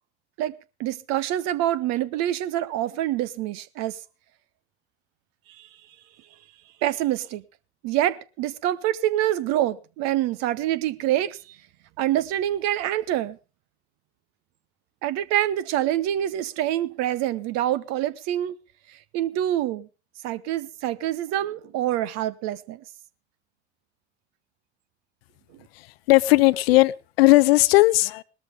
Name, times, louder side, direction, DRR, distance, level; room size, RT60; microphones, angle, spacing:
voice 1, 0.8-4.0 6.8-7.4 7.8-11.4 12.0-13.4 15.0-18.6 19.1-19.9 20.2-22.8, right 13 dB, 50° right, 1.0 m, -26 dB
voice 2, 25.7-28.2, left 20 dB, 60° left, 0.6 m, -18 dB
19.0 x 13.5 x 3.5 m
figure-of-eight pair, 65°, 33 cm